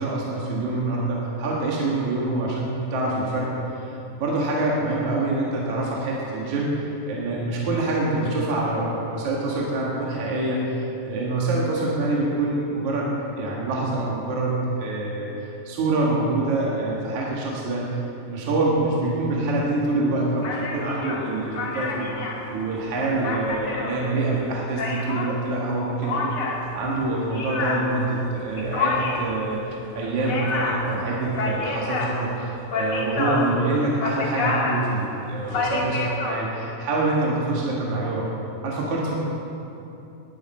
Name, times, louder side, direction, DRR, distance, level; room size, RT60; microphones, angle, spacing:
voice 1, 0.0-15.3 15.6-22.1 22.5-26.4 26.7-38.3 38.6-39.2, right 2 dB, 55° right, -4 dB, 2.9 m, -25 dB
sound 1, 20.4-25.4 26.0-36.4, left 3 dB, 50° left, 1.4 m, -29 dB
18.0 x 12.0 x 4.4 m, 2.9 s
omnidirectional pair, 4.2 m